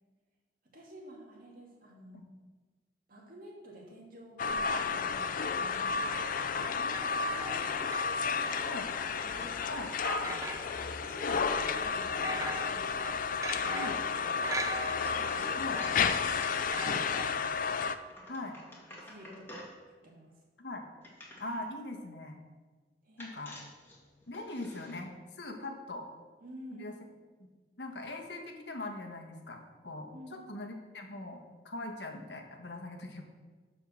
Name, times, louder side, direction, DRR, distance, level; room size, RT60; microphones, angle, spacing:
voice 1, 0.7-2.3 3.1-7.0 7.3-7.9 8.3-8.8 9.2-9.6 10.2-10.5 11.0-12.9 13.5-13.9 14.3-14.5 15.2-15.6 16.3-17.3 18.2-18.4 19.0-19.7 20.0-20.3 23.0-23.4 26.4-27.0 30.1-30.7 31.8-31.9, equal, 55° right, -1 dB, 2.3 m, -50 dB
sound 1, 4.4-18.0, left 5 dB, 50° left, 0.5 m, -32 dB
sound 2, 6.9-8.6 8.9-9.0 10.0-10.9 11.2-11.5 11.8-15.4 15.7-17.2, right 2 dB, 20° right, 0.8 m, -40 dB
sound 3, 8.4-11.1 14.1-16.9 17.5-19.8 21.0-21.7 23.2-25.0, left 1 dB, 15° left, 2.1 m, -49 dB
voice 2, 21.4-22.4 23.2-23.6 24.3-26.1 26.7-26.9 27.4-27.5 27.8-33.3, left 2 dB, 80° left, 3 dB, 1.4 m, -41 dB
12.0 x 4.9 x 6.4 m, 1.4 s
head